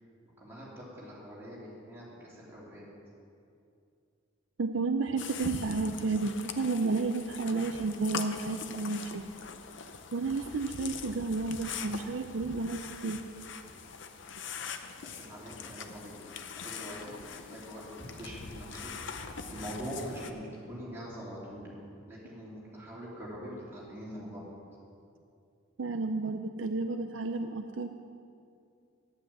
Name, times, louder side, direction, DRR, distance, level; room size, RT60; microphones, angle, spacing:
voice 1, 0.4-2.8 15.0-16.4 16.6-17.9 18.2-21.7 22.1-24.5, equal, 10° right, -7 dB, 3.1 m, -43 dB
voice 2, 4.6-9.2 10.1-13.2 25.8-27.9, right 3 dB, 60° right, 6 dB, 0.5 m, -31 dB
sound 1, 5.2-20.3, left 5 dB, 60° left, 0.6 m, -42 dB
9.7 x 8.7 x 7.8 m, 2.5 s
head